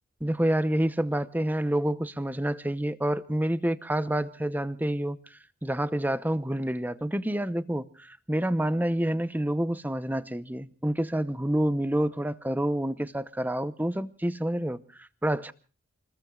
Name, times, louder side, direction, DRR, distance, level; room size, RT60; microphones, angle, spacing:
voice 1, 0.2-15.5, right 1 dB, 10° right, 0.8 m, -28 dB
28.5 x 20.5 x 2.4 m
head